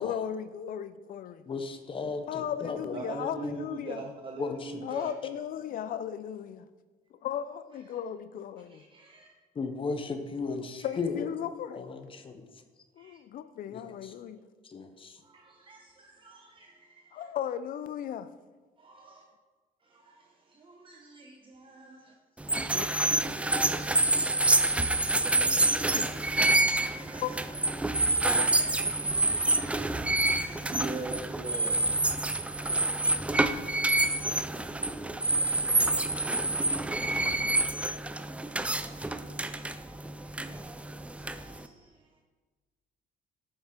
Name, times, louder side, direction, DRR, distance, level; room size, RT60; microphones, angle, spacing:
voice 1, 0.0-1.4 2.3-4.0 4.8-6.6 7.2-8.8 10.4-11.8 13.0-14.4 17.1-18.3 22.7-23.4 25.7-26.1 27.2-27.3, left 9 dB, 55° left, 13 dB, 0.5 m, -36 dB
voice 2, 1.5-3.0 3.4-3.5 4.4-4.8 9.6-11.3 11.8-12.3 13.7-14.1 14.6-15.2, left 4 dB, 30° left, 8 dB, 0.8 m, -35 dB
voice 3, 2.9-5.1 7.9-8.0 8.7-9.3 10.8-11.0 13.0-13.2 15.2-17.3 18.8-19.2 19.8-22.1 22.6-22.9 23.4-23.5 24.1-24.4 25.6-26.0 26.5-32.9 35.0-35.3 36.5-38.6 41.2-42.2, right 3 dB, 30° right, 0 dB, 0.9 m, -45 dB
sound 1, 22.4-41.7, right 2 dB, 5° right, 0.4 m, -27 dB
7.4 x 7.2 x 3.7 m, 1.3 s
cardioid pair, 110°, 17 cm